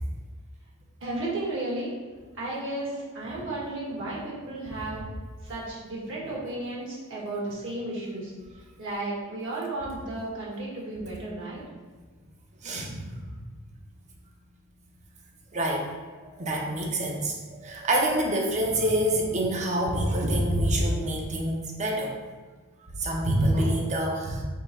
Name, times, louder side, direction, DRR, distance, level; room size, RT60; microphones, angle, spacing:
voice 1, 1.0-1.9 2.4-5.0 5.4-8.3 8.8-11.6, right 2 dB, 60° right, -6 dB, 1.4 m, -33 dB
voice 2, 12.6-13.0 15.5-15.9 16.4-17.3 17.6-22.1 23.0-24.4, right 1 dB, 35° right, -1 dB, 0.7 m, -26 dB
3.7 x 2.9 x 4.2 m, 1.4 s
head